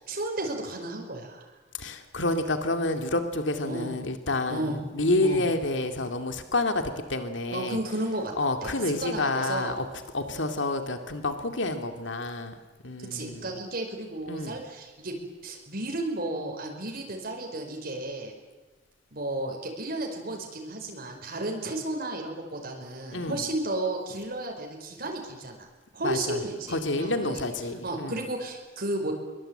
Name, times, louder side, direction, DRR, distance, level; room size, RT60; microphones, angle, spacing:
voice 1, 0.0-1.5 3.6-3.9 4.5-4.8 5.2-5.5 7.5-8.3 8.6-8.7 9.0-9.8 11.5-11.6 13.1-18.3 19.1-25.6 25.9-27.4 27.8-29.1, right 2 dB, 50° right, 1 dB, 5.1 m, -33 dB
voice 2, 1.8-6.8 7.1-7.8 8.4-9.9 10.1-12.5 12.8-13.5 14.3-14.6 23.1-23.4 26.0-26.4 26.7-28.2, left 2 dB, 70° left, 6 dB, 2.4 m, -29 dB
25.0 x 24.0 x 9.0 m, 1.3 s
head